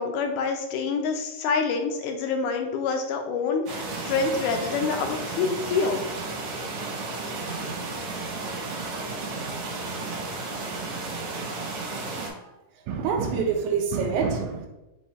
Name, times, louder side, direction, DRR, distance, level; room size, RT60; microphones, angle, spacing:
voice 1, 0.0-6.0, left 5 dB, 80° left, 4 dB, 1.9 m, -27 dB
sound 1, 3.7-12.3, right 3 dB, 65° right, 1.4 m, -33 dB
voice 2, 12.9-14.7, right 5 dB, 85° right, 3 dB, 2.0 m, -26 dB
5.5 x 2.2 x 4.2 m, 1.0 s
omnidirectional pair, 3.5 m